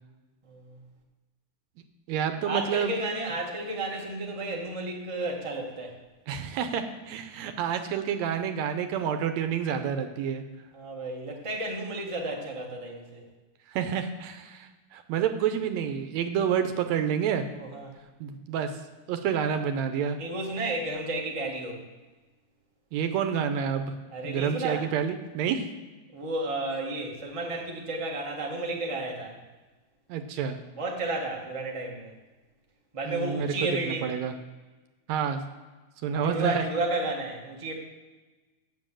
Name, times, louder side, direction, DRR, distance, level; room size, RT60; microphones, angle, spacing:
voice 1, 0.4-0.8 2.4-6.0 10.7-13.2 17.5-17.9 20.2-21.8 24.1-24.9 26.1-29.4 30.8-32.1 32.9-34.1 36.1-37.7, right 2 dB, 45° right, -1 dB, 0.4 m, -32 dB
voice 2, 2.1-3.0 6.3-10.4 13.7-17.4 18.2-18.7 19.1-20.2 22.9-23.9 24.2-25.7 30.1-30.6 33.1-34.3 35.1-35.4 36.0-36.6, right 8 dB, 75° right, 8 dB, 1.8 m, -29 dB
7.6 x 7.2 x 7.5 m, 1.2 s
omnidirectional pair, 3.5 m